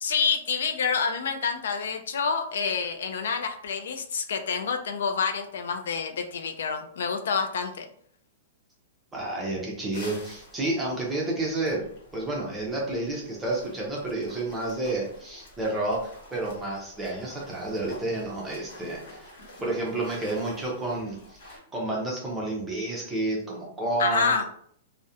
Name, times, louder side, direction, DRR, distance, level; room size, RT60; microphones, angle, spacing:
voice 1, 0.0-7.9 24.0-24.4, left 5 dB, 75° left, 7 dB, 0.3 m, -28 dB
voice 2, 9.1-11.8 12.1-19.3 19.6-24.3, right 2 dB, 5° right, -3 dB, 0.5 m, -30 dB
sound 1, 9.9-21.6, left 1 dB, 50° left, 1.0 m, -49 dB
2.3 x 2.0 x 2.7 m, 0.62 s
supercardioid pair, 180°, 0 cm